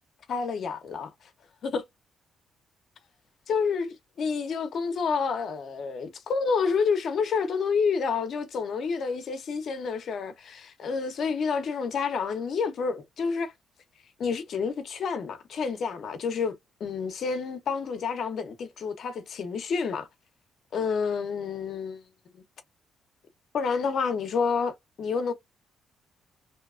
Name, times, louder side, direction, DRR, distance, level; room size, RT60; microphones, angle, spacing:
voice 1, 0.3-1.1 1.6-1.8 3.5-13.5 14.2-20.1 20.7-22.0 22.3-22.4 23.5-25.3, left 5 dB, 60° left, 0.7 m, -29 dB
2.8 x 2.3 x 2.4 m
cardioid pair, 90°, 0 cm